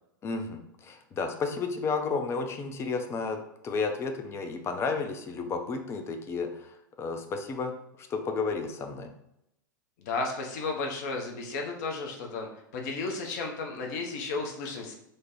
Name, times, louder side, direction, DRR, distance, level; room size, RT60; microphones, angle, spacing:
voice 1, 0.2-6.7 7.0-7.7 8.0-9.1, left 4 dB, 25° left, 6 dB, 0.5 m, -32 dB
voice 2, 10.0-12.5 12.7-14.9, left 3 dB, 55° left, 2 dB, 0.8 m, -33 dB
3.2 x 2.2 x 4.0 m, 0.82 s
figure-of-eight pair, 95°, 11 cm